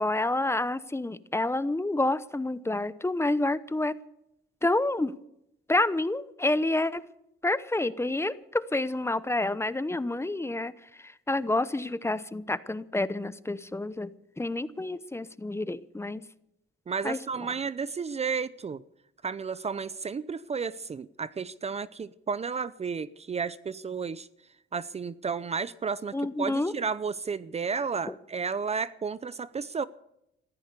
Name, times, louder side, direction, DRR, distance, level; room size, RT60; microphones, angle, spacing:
voice 1, 0.0-3.9 4.6-5.2 5.7-7.0 7.4-10.7 11.0-14.1 14.4-16.2 17.0-17.2 26.1-26.7, left 2 dB, 15° left, 0.8 m, -28 dB
voice 2, 16.9-18.8 19.2-24.3 24.7-29.9, right 5 dB, 30° right, 0.6 m, -32 dB
15.5 x 13.0 x 6.7 m
cardioid pair, 90°, 20 cm